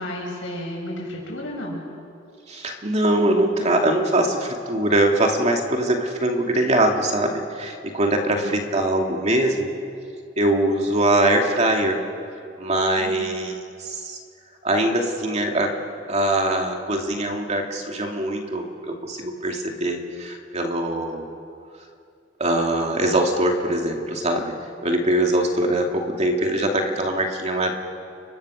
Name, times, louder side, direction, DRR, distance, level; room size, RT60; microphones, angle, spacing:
voice 1, 0.0-1.8 8.3-8.5 13.0-13.3, left 1 dB, 90° left, -2 dB, 7.8 m, -32 dB
voice 2, 2.5-9.7 10.4-12.0 12.6-14.2 14.6-15.8 16.1-21.2 22.4-24.5 24.8-27.7, right 1 dB, 35° right, 2 dB, 2.6 m, -22 dB
29.5 x 23.5 x 6.5 m, 2.4 s
head